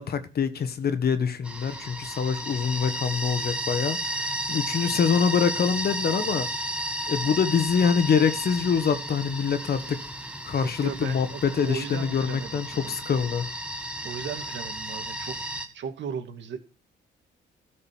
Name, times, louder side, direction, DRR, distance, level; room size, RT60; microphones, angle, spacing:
voice 1, 0.0-6.5 7.1-10.0 10.4-13.5, left 6 dB, 50° left, 1.4 m, -25 dB
sound 1, 1.4-15.7, right 1 dB, 5° right, 1.8 m, -33 dB
voice 2, 10.6-12.9 14.0-15.4 15.7-16.6, right 7 dB, 65° right, 2.1 m, -36 dB
13.0 x 5.3 x 7.4 m
cardioid pair, 90°, 20 cm